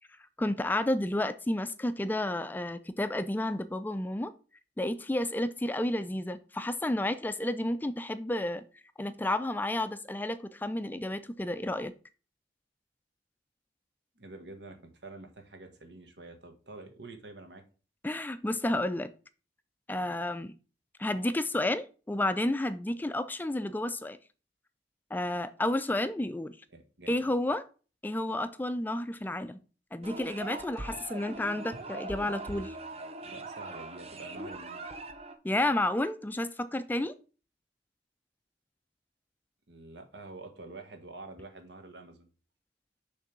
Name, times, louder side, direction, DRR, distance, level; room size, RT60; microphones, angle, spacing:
voice 1, 0.4-4.3 4.8-8.6 9.0-11.9 18.0-19.1 19.9-20.5 21.0-24.2 25.1-26.6 27.1-27.6 28.0-29.6 29.9-32.8 35.4-37.1, left 1 dB, 10° left, 0.4 m, -31 dB
voice 2, 14.2-17.6 26.7-27.3 33.2-34.8 39.7-42.3, right 2 dB, 80° right, 1.5 m, -47 dB
sound 1, 30.0-35.4, right 2 dB, 35° right, 0.7 m, -41 dB
6.5 x 3.3 x 6.0 m
head